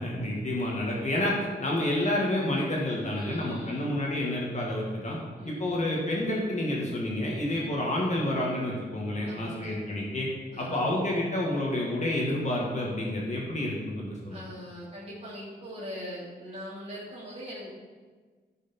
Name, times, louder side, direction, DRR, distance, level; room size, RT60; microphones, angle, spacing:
voice 1, 0.0-5.2 5.5-10.3 10.6-14.4, left 1 dB, 40° left, -3 dB, 1.8 m, -29 dB
voice 2, 3.1-3.9 5.4-6.0 9.3-9.8 10.5-10.9 14.3-17.7, equal, 35° right, -8 dB, 2.5 m, -41 dB
14.5 x 5.8 x 4.4 m, 1.4 s
wide cardioid pair, 170°, 18 cm